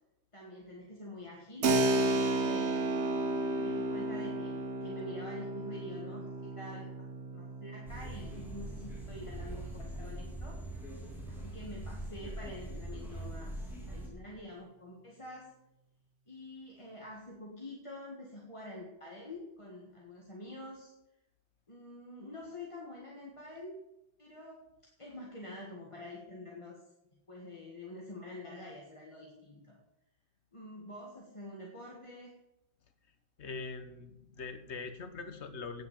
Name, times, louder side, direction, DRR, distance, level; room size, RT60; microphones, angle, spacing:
voice 1, 0.3-3.0 3.5-7.1 7.3-10.6 11.3-15.5 16.3-20.9 21.7-23.8 24.2-26.8 27.3-29.8 30.5-32.3, left 1 dB, 30° left, -2 dB, 1.7 m, -47 dB
Keyboard (musical), 1.6-10.0, right 2 dB, 85° right, 1.3 m, -33 dB
sound 1, 7.9-14.1, right 1 dB, ahead, 2.7 m, -42 dB
voice 2, 33.4-35.9, left 4 dB, 90° left, 10 dB, 1.4 m, -42 dB
9.4 x 7.7 x 7.4 m, 0.90 s
omnidirectional pair, 1.1 m